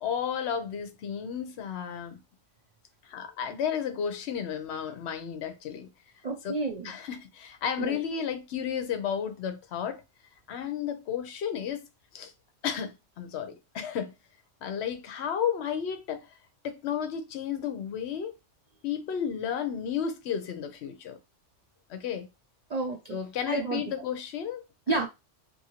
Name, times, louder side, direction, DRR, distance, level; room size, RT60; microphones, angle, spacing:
voice 1, 0.0-2.2 3.0-5.9 6.4-6.5 6.8-10.0 10.5-11.8 12.1-12.3 12.6-14.1 14.6-16.3 16.6-18.3 18.8-21.2 21.9-22.3 23.1-25.0, left 8 dB, 65° left, 0.9 m, -33 dB
voice 2, 6.2-6.9 7.8-8.0 22.7-23.2 23.5-23.8 24.9-25.1, right 3 dB, 70° right, 0.3 m, -30 dB
2.7 x 2.6 x 2.8 m
omnidirectional pair, 1.2 m